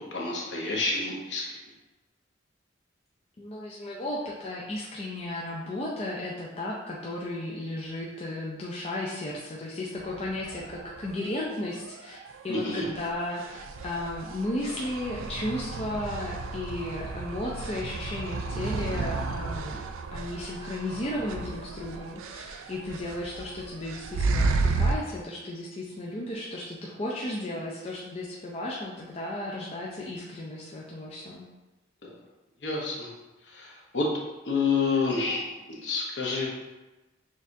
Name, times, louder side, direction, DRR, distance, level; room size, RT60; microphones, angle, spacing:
voice 1, 0.1-1.6 12.5-12.9 32.0-32.1 32.6-33.1 33.5-34.1 34.4-36.5, left 4 dB, 60° left, -3 dB, 0.9 m, -29 dB
voice 2, 3.4-12.2 12.4-19.8 20.1-31.5, left 1 dB, 30° left, -4 dB, 0.4 m, -34 dB
sound 1, 10.0-25.0, right 3 dB, 85° right, 0.3 m, -33 dB
6.3 x 2.4 x 2.6 m, 1.1 s
head